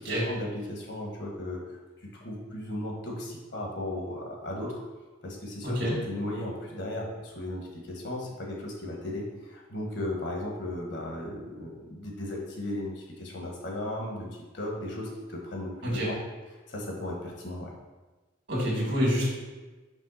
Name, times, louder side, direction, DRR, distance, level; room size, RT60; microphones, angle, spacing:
voice 1, 0.0-4.8 5.2-14.3 14.5-16.2 16.7-17.7, left 1 dB, 60° left, -1 dB, 1.4 m, -36 dB
voice 2, 5.6-6.0 15.8-16.1 18.5-19.3, equal, 55° right, -4 dB, 2.1 m, -27 dB
5.3 x 3.6 x 5.7 m, 1.2 s
head